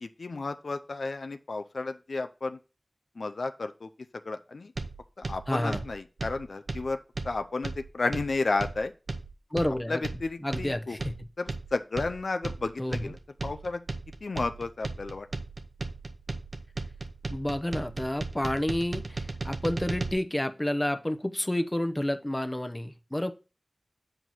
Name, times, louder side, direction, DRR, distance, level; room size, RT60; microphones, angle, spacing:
voice 1, 0.0-2.6 3.2-3.9 4.2-4.7 5.2-7.0 7.2-8.9 9.9-11.0 11.4-13.2 13.4-13.8 14.2-15.3, left 3 dB, 85° left, 8 dB, 0.4 m, -32 dB
sound 1, 4.8-20.1, right 3 dB, 80° right, 0.8 m, -36 dB
voice 2, 5.5-5.8 9.5-10.1 10.4-11.3 12.8-13.1 17.3-23.3, left 1 dB, 20° left, 9 dB, 0.7 m, -30 dB
7.7 x 4.6 x 4.0 m, 0.32 s
wide cardioid pair, 45°, 0 cm